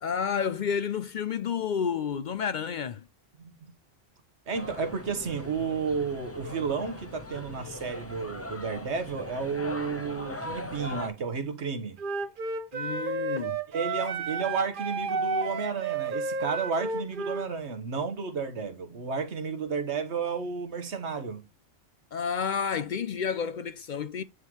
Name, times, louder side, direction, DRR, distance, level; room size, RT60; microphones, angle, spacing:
voice 1, 0.0-3.1 12.7-13.6 22.1-24.2, left 7 dB, 60° left, 0.5 m, -30 dB
voice 2, 3.4-3.7 4.5-12.0 13.7-21.4, right 5 dB, 90° right, 1.5 m, -32 dB
sound 1, 4.5-11.1, left 2 dB, 15° left, 0.7 m, -40 dB
Wind instrument woodwind instrument, 12.0-17.5, right 4 dB, 55° right, 0.9 m, -31 dB
9.4 x 3.7 x 3.1 m
omnidirectional pair, 1.1 m